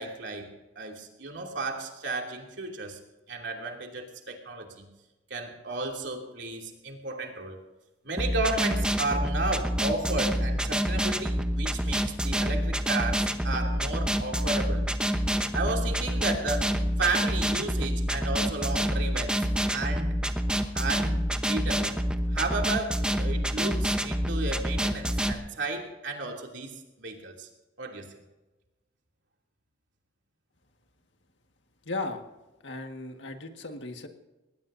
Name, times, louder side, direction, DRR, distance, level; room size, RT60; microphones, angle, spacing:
voice 1, 0.0-3.0 3.3-4.9 5.3-7.6 8.0-14.9 15.5-20.2 20.7-22.0 22.3-27.5 27.8-28.1, right 3 dB, 75° right, 1 dB, 2.8 m, -33 dB
sound 1, 8.2-25.3, equal, 5° right, 0.9 m, -27 dB
voice 2, 31.8-32.2 32.6-34.1, left 2 dB, 75° left, 5 dB, 1.7 m, -36 dB
20.5 x 18.5 x 2.7 m, 1.1 s
head